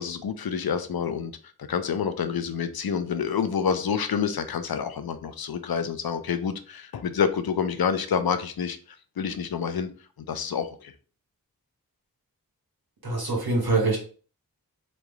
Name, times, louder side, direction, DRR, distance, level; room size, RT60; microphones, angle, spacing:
voice 1, 0.0-1.3 1.7-8.8 9.2-9.9 10.3-10.9, left 7 dB, 75° left, 0.5 m, -28 dB
voice 2, 13.0-14.0, right 3 dB, 80° right, 1.4 m, -24 dB
3.1 x 2.3 x 3.7 m
wide cardioid pair, 45°, 36 cm